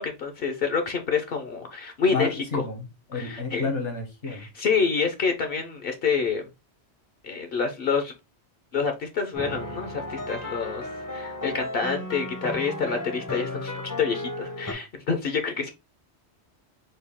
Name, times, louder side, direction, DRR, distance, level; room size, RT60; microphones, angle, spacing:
voice 1, 0.0-2.6 3.1-3.7 4.3-6.4 7.2-8.1 8.7-15.7, left 5 dB, 60° left, 0.8 m, -27 dB
voice 2, 2.1-4.4, left 3 dB, 80° left, 1.5 m, -31 dB
sound 1, 9.3-14.7, left 2 dB, 20° left, 0.5 m, -34 dB
4.2 x 2.3 x 3.4 m
omnidirectional pair, 1.2 m